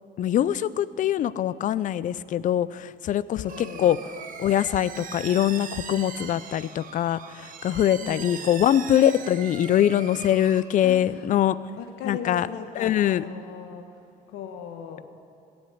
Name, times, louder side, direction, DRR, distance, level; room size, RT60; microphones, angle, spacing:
voice 1, 0.2-4.0 4.4-11.6 12.0-12.5 12.8-13.2, left 11 dB, 50° left, 18 dB, 0.5 m, -23 dB
voice 2, 3.3-3.9 8.0-8.4 10.8-11.3 11.8-13.9 14.3-15.1, left 7 dB, 90° left, 6 dB, 1.2 m, -38 dB
sound 1, 3.5-10.6, right 7 dB, 50° right, 1.3 m, -40 dB
16.5 x 7.9 x 9.9 m, 2.5 s
cardioid pair, 110°, 17 cm